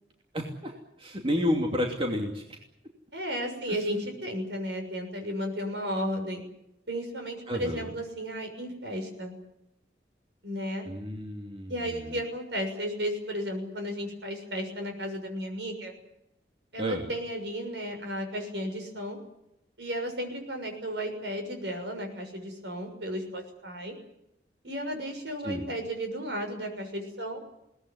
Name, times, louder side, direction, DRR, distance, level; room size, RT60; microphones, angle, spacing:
voice 1, 0.3-0.7 1.0-2.6 3.7-3.8 7.5-7.9 10.8-12.2 16.8-17.1 25.4-25.6, equal, 30° right, 1 dB, 2.8 m, -31 dB
voice 2, 3.1-6.4 6.9-9.3 10.4-10.9 11.7-16.0 16.7-19.2 19.8-23.9 24.6-27.4, equal, 70° right, 5 dB, 6.6 m, -34 dB
22.0 x 19.0 x 9.9 m, 0.85 s
head